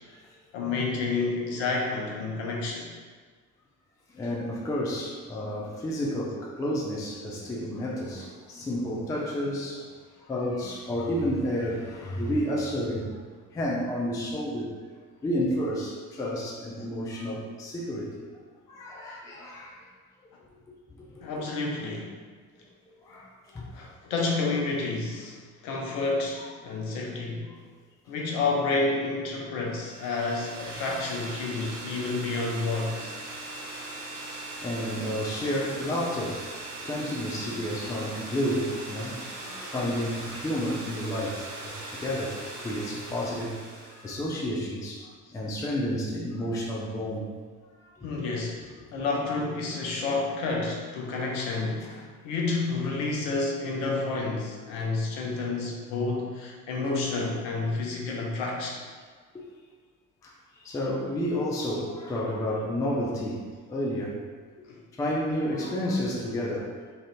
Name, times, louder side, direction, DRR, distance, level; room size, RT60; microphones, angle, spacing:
voice 1, 0.5-2.9 21.2-22.1 23.7-27.5 28.1-33.1 48.0-58.8 64.7-64.8, left 3 dB, 55° left, -1 dB, 0.8 m, -30 dB
voice 2, 4.1-9.9 10.2-13.2 13.5-14.7 15.2-18.2 18.7-19.7 21.1-21.4 23.0-23.7 34.6-36.4 36.8-42.4 42.6-43.5 43.9-47.3 48.0-48.1 51.9-52.0 59.3-59.4 60.2-60.3 60.6-63.4 63.7-64.2 65.0-66.9, equal, 10° left, -3 dB, 0.4 m, -31 dB
sound 1, 29.7-44.2, right 2 dB, 75° right, 0.8 m, -40 dB
2.7 x 2.5 x 3.3 m, 1.5 s
figure-of-eight pair, 60°, 45 cm